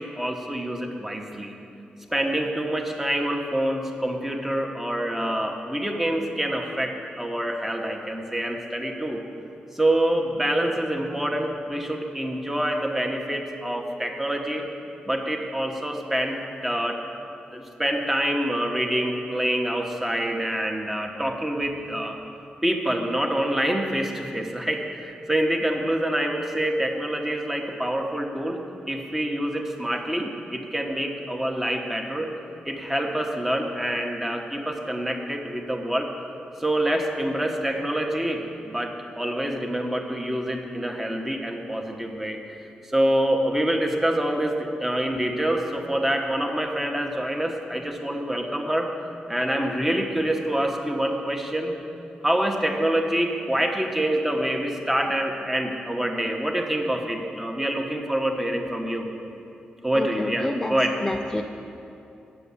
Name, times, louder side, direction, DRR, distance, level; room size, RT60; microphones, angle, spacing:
voice 1, 0.0-1.5 2.1-9.2 9.7-14.6 15.0-17.0 17.5-22.2 22.6-28.6 28.9-32.3 32.6-36.1 36.6-42.6 42.9-48.9 49.3-51.7 52.2-59.1 59.8-61.0, right 1 dB, 10° right, 2 dB, 1.0 m, -26 dB
voice 2, 59.9-60.7 61.0-61.4, left 1 dB, 15° left, 2 dB, 0.4 m, -28 dB
8.4 x 6.8 x 8.4 m, 2.8 s
cardioid pair, 95°, 3 cm